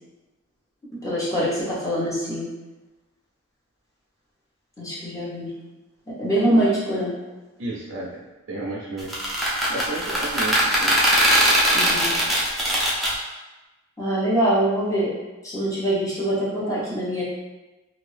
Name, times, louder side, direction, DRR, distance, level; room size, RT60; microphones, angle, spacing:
voice 1, 1.0-2.5 4.8-5.5 6.1-7.1 11.7-12.1 14.0-15.1 15.4-17.2, right 1 dB, 15° left, -9 dB, 1.0 m, -23 dB
voice 2, 7.6-9.1 9.7-11.0, right 2 dB, 70° right, -5 dB, 0.5 m, -32 dB
sound 1, 9.0-13.1, equal, ahead, 0.5 m, -20 dB
2.6 x 2.6 x 3.2 m, 1.1 s
head